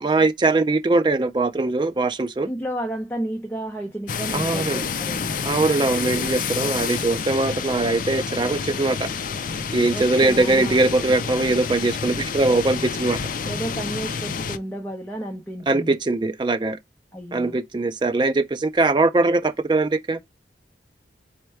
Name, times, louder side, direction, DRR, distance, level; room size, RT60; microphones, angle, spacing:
voice 1, 0.0-2.5 4.3-4.8 5.5-9.1 9.7-13.2 15.7-16.8 17.3-20.2, right 2 dB, 25° right, 0.4 m, -21 dB
voice 2, 2.5-5.3 9.9-10.9 13.4-16.0 17.1-17.6, right 1 dB, 10° left, 0.6 m, -32 dB
sound 1, 4.1-14.6, left 6 dB, 45° left, 0.4 m, -29 dB
4.4 x 2.1 x 4.4 m
head